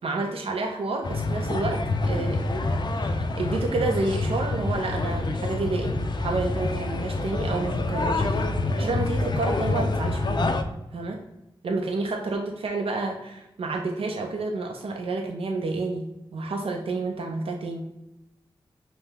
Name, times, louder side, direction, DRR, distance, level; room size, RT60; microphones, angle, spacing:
voice 1, 0.0-2.5 3.0-10.5 10.9-11.2 11.6-17.8, right 3 dB, 85° right, 2 dB, 0.5 m, -30 dB
sound 1, 1.0-10.6, left 2 dB, 50° left, 0.4 m, -27 dB
5.7 x 2.1 x 3.3 m, 0.91 s
wide cardioid pair, 80°, 9 cm